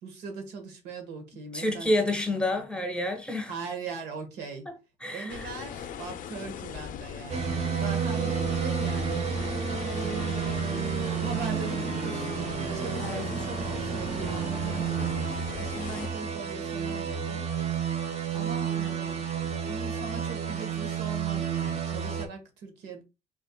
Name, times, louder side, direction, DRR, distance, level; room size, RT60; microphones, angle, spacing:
voice 1, 0.0-2.1 2.5-2.8 3.5-4.7 5.1-10.0 10.5-17.5 18.3-23.0, right 4 dB, 80° right, 1.4 m, -40 dB
voice 2, 1.5-3.5 5.0-5.5 13.0-13.2, left 1 dB, 5° left, 1.0 m, -28 dB
sound 1, 5.3-16.1, left 8 dB, 50° left, 0.5 m, -40 dB
sound 2, 7.3-22.3, right 6 dB, 40° right, 1.0 m, -30 dB
5.2 x 3.6 x 2.2 m
cardioid pair, 110°, 17 cm